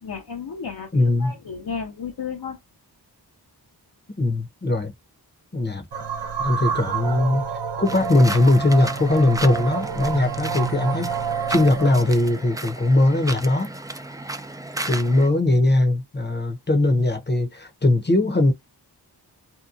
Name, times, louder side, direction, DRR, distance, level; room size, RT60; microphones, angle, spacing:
voice 1, 0.0-2.6, left 6 dB, 65° left, 0.8 m, -33 dB
voice 2, 0.9-1.3 4.2-4.9 5.5-5.8 6.4-11.1 11.5-13.8 14.9-18.5, left 2 dB, 25° left, 0.8 m, -20 dB
sound 1, 5.9-12.1, right 6 dB, 85° right, 0.8 m, -28 dB
sound 2, 7.8-15.3, right 2 dB, 10° right, 0.4 m, -34 dB
2.8 x 2.2 x 2.5 m
cardioid pair, 50°, 41 cm